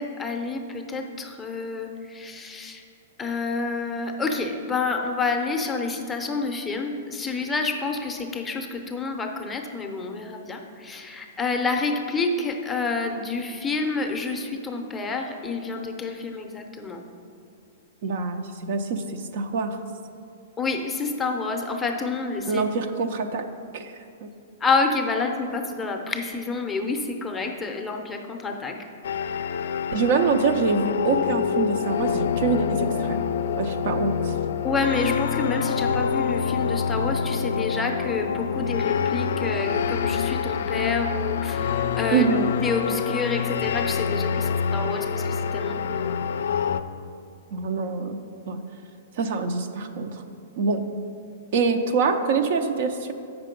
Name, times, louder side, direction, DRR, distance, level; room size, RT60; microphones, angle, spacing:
voice 1, 0.0-2.8 3.2-17.0 20.6-22.6 24.6-28.9 34.6-42.3 42.6-46.2, left 4 dB, 10° left, 3 dB, 0.6 m, -28 dB
voice 2, 18.0-19.0 19.3-19.8 22.5-23.4 23.7-23.9 24.2-24.3 29.9-33.2 33.6-34.3 42.1-42.5 47.5-48.2 48.5-48.6 49.2-50.1 50.6-50.8 51.5-53.1, right 4 dB, 55° right, 7 dB, 0.5 m, -25 dB
sound 1, 29.0-46.8, left 7 dB, 75° left, 0.3 m, -26 dB
7.6 x 5.9 x 5.2 m, 2.5 s
hypercardioid pair, 150°, 0 cm